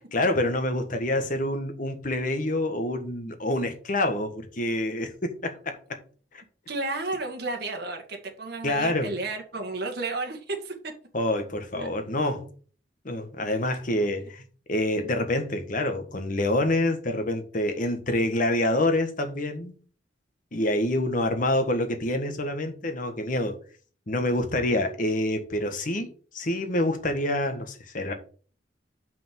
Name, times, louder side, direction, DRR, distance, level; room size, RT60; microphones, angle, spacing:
voice 1, 0.1-6.0 8.6-9.1 11.1-12.5 13.0-14.4 14.7-19.7 20.5-23.6 24.1-26.1 26.3-28.1, left 1 dB, 45° left, 1.4 m, -27 dB
voice 2, 6.7-10.9 11.7-11.9, right 3 dB, 60° right, 1.8 m, -32 dB
5.9 x 5.2 x 6.8 m
head